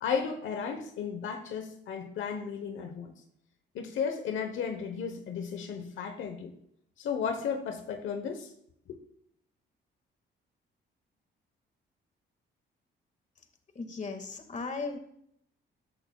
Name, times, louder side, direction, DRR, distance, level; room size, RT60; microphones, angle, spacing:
voice 1, 0.0-3.1 3.7-6.5 7.0-8.5 8.9-9.0, left 6 dB, 75° left, 5 dB, 1.1 m, -34 dB
voice 2, 13.7-15.0, left 4 dB, 40° left, 6 dB, 1.9 m, -37 dB
14.0 x 11.0 x 2.3 m, 0.73 s
cardioid pair, 90°, 20 cm